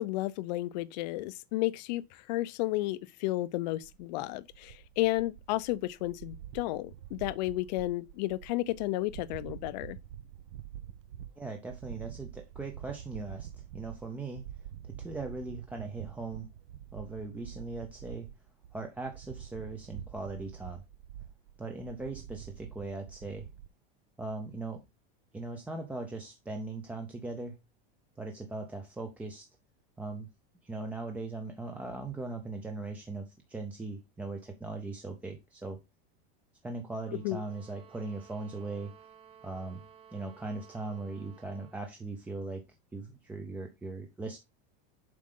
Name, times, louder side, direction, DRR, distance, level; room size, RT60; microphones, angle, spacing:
voice 1, 0.0-2.0 2.3-10.0 37.2-37.4, left 17 dB, 45° left, 0.5 m, -32 dB
sound 1, 3.8-23.7, right 10 dB, 70° right, 0.7 m, -47 dB
voice 2, 11.4-13.5 13.7-14.4 14.8-16.5 16.9-18.3 18.7-20.8 21.6-23.5 24.2-24.8 25.3-27.5 28.2-29.5 30.0-30.3 30.6-35.8 36.6-38.9 39.4-39.8 40.1-42.6 42.9-44.4, right 3 dB, 5° right, 0.5 m, -39 dB
sound 2, 37.1-41.8, right 8 dB, 20° right, 0.9 m, -56 dB
7.6 x 4.9 x 3.7 m
supercardioid pair, 175°, 29 cm